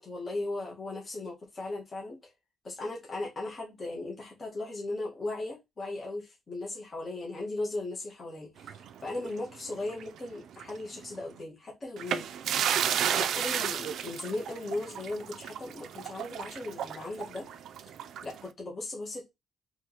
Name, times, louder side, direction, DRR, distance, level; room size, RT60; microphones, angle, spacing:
voice 1, 0.0-2.3 2.6-12.3 13.1-17.5 18.2-19.3, left 2 dB, 30° left, 1.5 m, -37 dB
sound 1, 8.6-10.2 10.5-10.7 12.0-18.5, right 9 dB, 65° right, 0.4 m, -33 dB
4.8 x 3.1 x 2.9 m
cardioid pair, 160°, 0 cm